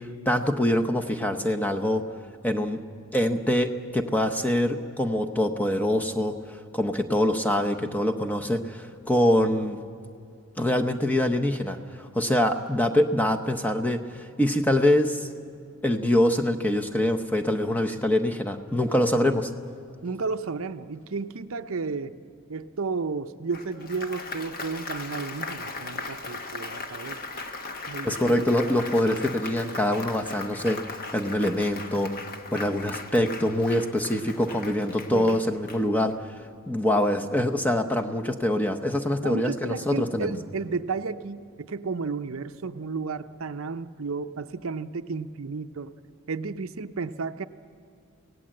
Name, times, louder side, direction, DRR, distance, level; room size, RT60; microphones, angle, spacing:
voice 1, 0.3-2.0 2.4-2.8 3.1-3.7 3.9-9.8 10.6-15.3 15.8-19.5 28.0-32.1 32.5-36.4 36.7-40.3, left 1 dB, 5° left, 4 dB, 0.8 m, -24 dB
voice 2, 20.0-22.2 22.5-27.2 27.9-28.9 35.1-35.4 39.2-45.9 46.3-47.4, right 4 dB, 65° right, 10 dB, 0.6 m, -33 dB
Applause, 23.5-36.2, left 3 dB, 40° left, 1.3 m, -38 dB
25.0 x 17.5 x 7.7 m, 2.4 s
head